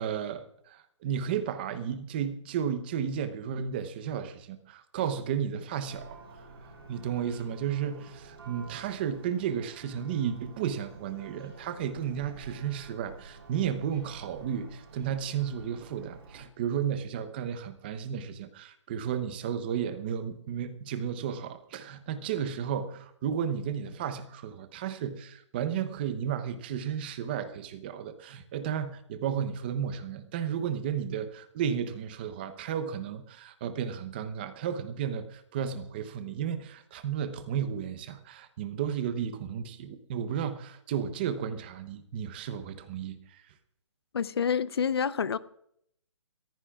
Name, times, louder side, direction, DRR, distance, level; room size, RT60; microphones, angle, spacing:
voice 1, 0.0-6.1 6.9-43.4, right 8 dB, 20° right, 0.8 m, -33 dB
Church bell, 5.9-16.5, right 3 dB, 55° right, 7.4 m, -50 dB
voice 2, 44.1-45.4, left 7 dB, 55° left, 0.7 m, -28 dB
22.0 x 15.0 x 2.4 m
hypercardioid pair, 170°, 16 cm